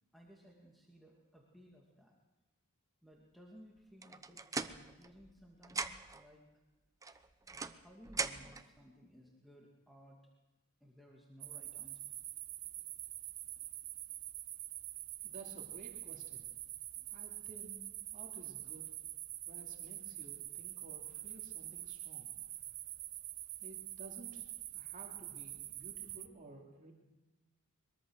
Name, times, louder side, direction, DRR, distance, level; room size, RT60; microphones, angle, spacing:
voice 1, 0.1-2.1 3.0-4.4 4.7-6.4 7.1-7.2 7.8-10.2 10.8-12.2, equal, ahead, -2 dB, 2.3 m, -59 dB
sound 1, 4.0-5.4 5.6-6.2 7.0-8.7, right 4 dB, 15° right, 0.8 m, -40 dB
sound 2, 11.4-26.3, right 14 dB, 70° right, 1.0 m, -46 dB
voice 2, 15.2-16.5 17.1-17.8 18.1-18.9 19.4-22.3 23.6-24.5 24.7-26.9, right 2 dB, 35° right, -1 dB, 2.9 m, -54 dB
22.5 x 22.0 x 6.4 m, 1.1 s
head